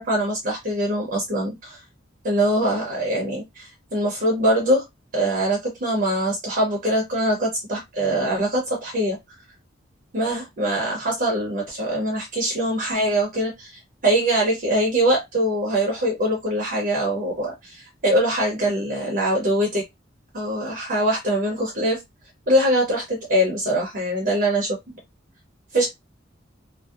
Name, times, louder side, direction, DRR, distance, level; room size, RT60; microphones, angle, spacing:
voice 1, 0.0-1.8 2.2-4.8 5.1-9.2 10.1-19.8 20.3-22.0 22.5-24.8 25.7-25.9, right 1 dB, 45° right, -1 dB, 0.7 m, -23 dB
2.6 x 2.1 x 2.3 m, 0.19 s
head